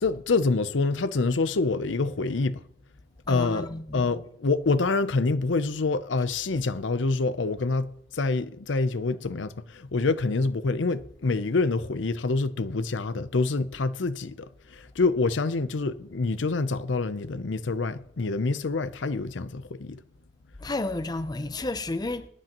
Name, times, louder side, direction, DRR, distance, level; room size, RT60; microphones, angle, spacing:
voice 1, 0.0-2.6 3.3-20.0, left 3 dB, 75° left, 0.6 m, -26 dB
voice 2, 3.3-4.0 20.6-22.3, left 2 dB, 20° left, 0.6 m, -31 dB
20.5 x 10.5 x 3.0 m
head